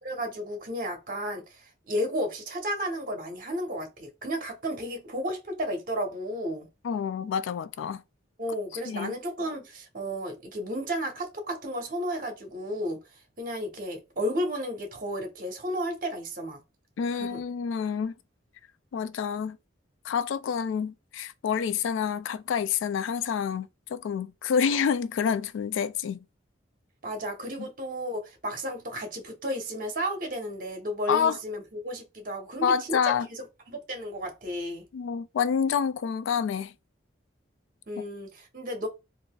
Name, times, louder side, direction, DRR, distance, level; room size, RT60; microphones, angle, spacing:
voice 1, 0.0-6.7 8.4-13.0 13.4-16.6 17.1-17.4 27.0-34.8 37.9-38.9, equal, 45° right, 1.0 m, -33 dB
voice 2, 6.8-8.0 8.9-9.1 17.0-18.1 18.9-19.6 20.0-26.2 27.6-27.7 31.1-31.4 32.6-33.3 34.9-36.7, left 7 dB, 80° left, 0.3 m, -28 dB
3.9 x 2.6 x 2.3 m
head